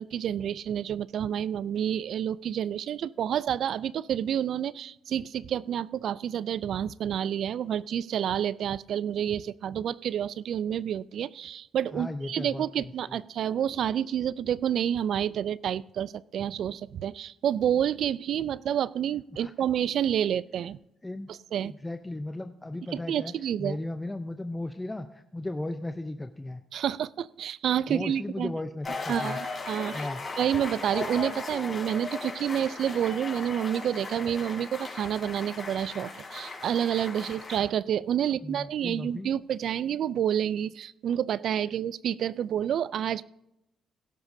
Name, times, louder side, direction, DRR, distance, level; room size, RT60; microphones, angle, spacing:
voice 1, 0.0-20.8 21.5-21.7 22.9-23.8 26.7-28.6 29.1-30.1 30.4-43.2, right 9 dB, 70° right, 19 dB, 0.3 m, -29 dB
voice 2, 11.9-13.2 19.3-19.5 21.0-21.3 21.6-23.3 23.6-26.6 27.9-29.4 29.9-30.2 38.4-39.3, left 2 dB, 15° left, 8 dB, 0.6 m, -36 dB
sound 1, 28.8-37.6, left 3 dB, 35° left, 4.1 m, -37 dB
16.5 x 12.0 x 2.7 m, 0.87 s
cardioid pair, 90°, 0 cm